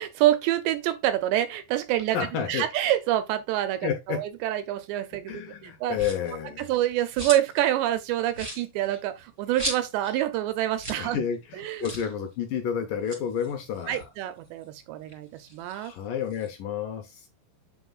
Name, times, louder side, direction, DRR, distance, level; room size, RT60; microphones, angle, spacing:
voice 1, 0.0-2.2 2.5-6.0 6.6-11.2 11.6-11.9 13.9-15.9, right 13 dB, 80° right, 2.7 m, -27 dB
voice 2, 2.1-2.7 3.8-4.2 5.3-6.7 11.0-14.1 15.7-17.3, left 8 dB, 80° left, 1.9 m, -30 dB
sound 1, 5.9-6.4 6.8-7.6 7.9-8.0 8.3-10.2 10.5-10.6 10.8-11.1 11.3-11.4 11.8-12.1 12.9-14.6 15.0-16.5, right 1 dB, 20° right, 2.4 m, -37 dB
8.2 x 7.6 x 2.4 m
omnidirectional pair, 5.3 m